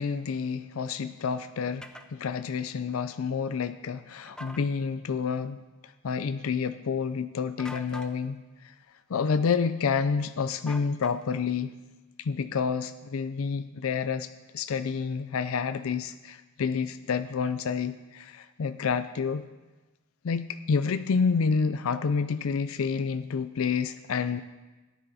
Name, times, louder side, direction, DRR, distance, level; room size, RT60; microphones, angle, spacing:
voice 1, 0.0-5.6 6.0-8.4 9.1-11.7 12.3-14.3 14.5-19.4 20.2-24.4, left 5 dB, 80° left, 11 dB, 0.4 m, -29 dB
sound 1, 1.8-2.1 4.3-4.6 7.6-8.2 10.7-11.4, left 1 dB, 5° left, 0.5 m, -43 dB
14.0 x 10.5 x 4.1 m, 1.1 s
head